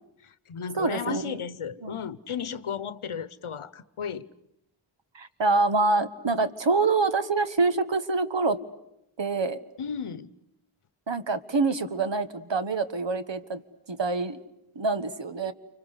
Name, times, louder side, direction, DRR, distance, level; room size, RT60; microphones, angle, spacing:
voice 1, 0.2-4.3 9.8-10.3, left 7 dB, 80° left, 1.0 m, -34 dB
voice 2, 0.8-1.4 1.8-2.0 5.1-8.6 9.2-9.6 11.1-13.6 13.9-14.4 14.7-15.5, right 3 dB, 60° right, 1.6 m, -26 dB
29.0 x 25.0 x 8.2 m
cardioid pair, 40°, 49 cm